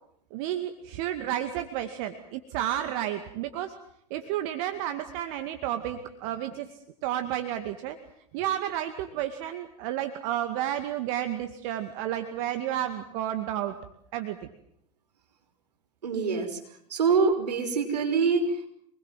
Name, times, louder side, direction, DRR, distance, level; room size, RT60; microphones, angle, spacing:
voice 1, 0.3-3.7 4.1-6.7 7.0-8.0 8.3-13.7 14.1-14.4, right 11 dB, 60° right, 7 dB, 2.2 m, -31 dB
voice 2, 16.0-16.6 16.9-18.7, right 5 dB, 85° right, 4 dB, 5.8 m, -25 dB
27.5 x 21.0 x 7.6 m, 0.71 s
hypercardioid pair, 90°, 20 cm